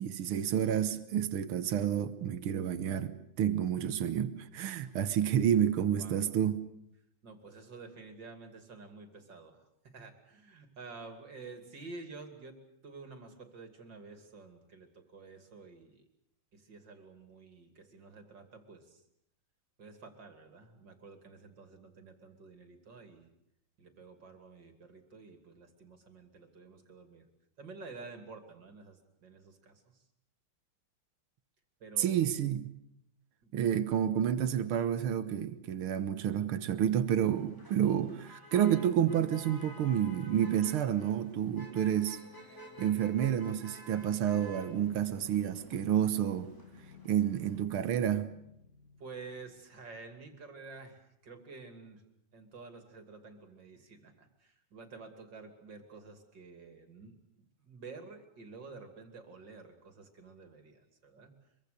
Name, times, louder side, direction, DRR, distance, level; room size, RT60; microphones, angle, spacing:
voice 1, 0.0-6.6 32.0-32.7 33.5-42.2 42.8-46.5 47.1-48.3, right 9 dB, 85° right, 2.0 m, -30 dB
voice 2, 7.2-16.0 16.5-19.0 19.8-23.3 23.8-27.3 27.6-30.1 31.8-32.2 33.4-33.5 49.0-52.0 52.3-61.5, right 4 dB, 55° right, 3.3 m, -50 dB
Motor vehicle (road), 37.1-47.6, equal, 10° left, 3.3 m, -52 dB
sound 1, 41.5-50.1, left 3 dB, 45° left, 3.3 m, -57 dB
24.5 x 23.5 x 6.7 m
omnidirectional pair, 2.3 m